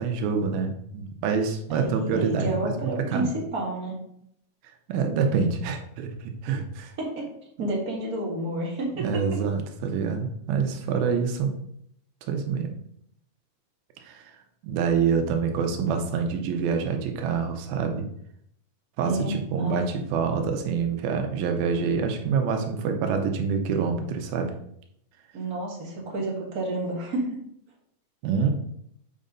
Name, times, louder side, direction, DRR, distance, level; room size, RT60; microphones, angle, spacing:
voice 1, 0.0-3.3 4.9-6.9 9.0-11.5 12.3-12.7 14.1-14.2 14.6-18.1 19.0-24.5 28.2-28.5, right 5 dB, 85° right, 5 dB, 2.7 m, -26 dB
voice 2, 1.7-4.0 7.0-7.3 7.6-8.9 19.0-19.9 25.3-27.3, right 2 dB, 40° right, -2 dB, 1.3 m, -30 dB
7.8 x 5.4 x 3.8 m, 0.72 s
omnidirectional pair, 4.2 m